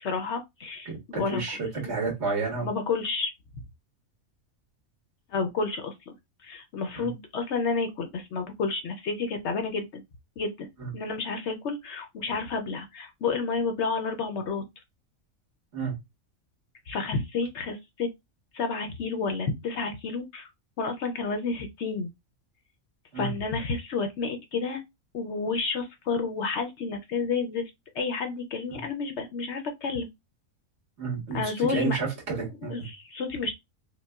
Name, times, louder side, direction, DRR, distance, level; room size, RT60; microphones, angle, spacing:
voice 1, 0.0-1.4 1.7-1.9 2.6-3.3 5.3-6.1 6.4-10.0 10.4-10.7 10.9-14.6 16.9-18.1 18.5-20.5 20.8-22.1 23.2-24.8 25.1-27.6 27.9-30.1 31.3-32.0 32.6-33.5, left 4 dB, 60° left, 0.8 m, -30 dB
voice 2, 0.9-1.6 1.8-2.7 7.0-7.1 10.8-10.9 15.7-15.9 23.1-23.3 31.0-32.9, right 4 dB, 50° right, 1.8 m, -31 dB
5.0 x 2.2 x 2.3 m
omnidirectional pair, 1.5 m